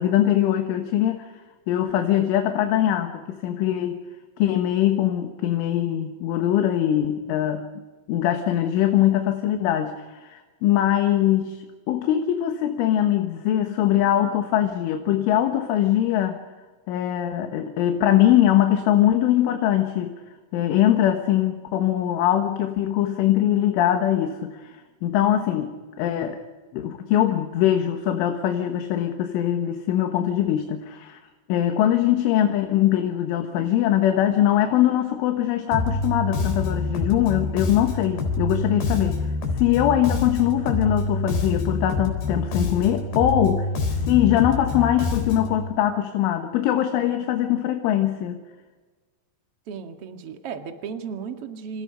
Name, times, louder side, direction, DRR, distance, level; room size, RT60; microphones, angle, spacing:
voice 1, 0.0-1.3 1.7-4.0 4.4-7.7 8.1-16.4 16.9-20.2 20.5-26.4 26.7-31.2 31.5-48.4, left 11 dB, 75° left, 4 dB, 3.8 m, -22 dB
Bass guitar, 35.7-45.6, left 3 dB, 55° left, 5.8 m, -26 dB
voice 2, 49.7-51.8, right 6 dB, 50° right, 4 dB, 1.7 m, -35 dB
29.0 x 28.0 x 5.2 m, 1.3 s
omnidirectional pair, 5.8 m